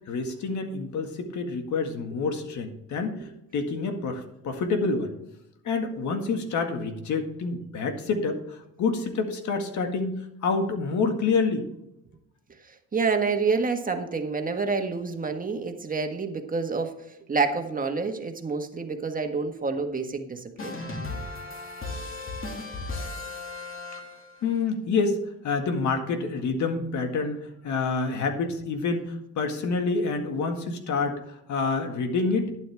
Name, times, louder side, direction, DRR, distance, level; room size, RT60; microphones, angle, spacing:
voice 1, 0.1-3.3 3.5-5.1 5.6-11.6 23.9-24.0 24.4-25.2 25.4-32.5, left 4 dB, 70° left, 5 dB, 1.9 m, -27 dB
voice 2, 12.6-20.7, right 4 dB, 30° right, 5 dB, 1.6 m, -28 dB
sound 1, 20.6-24.5, left 2 dB, 45° left, 2.6 m, -36 dB
11.5 x 9.3 x 3.5 m, 0.82 s
cardioid pair, 90°, 30 cm